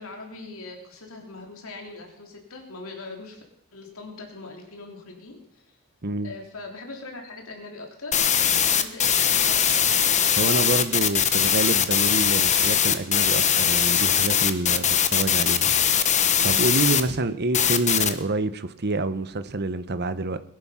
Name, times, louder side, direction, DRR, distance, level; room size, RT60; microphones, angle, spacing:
voice 1, 0.0-3.4 3.7-5.8 6.2-8.2 8.8-9.8, left 3 dB, 70° left, 3.3 m, -41 dB
voice 2, 6.0-6.3 10.4-16.1 16.4-20.4, right 2 dB, 50° right, 1.0 m, -27 dB
sound 1, 8.1-17.0 17.5-18.1, left 8 dB, 35° left, 1.1 m, -21 dB
21.0 x 11.0 x 5.7 m
head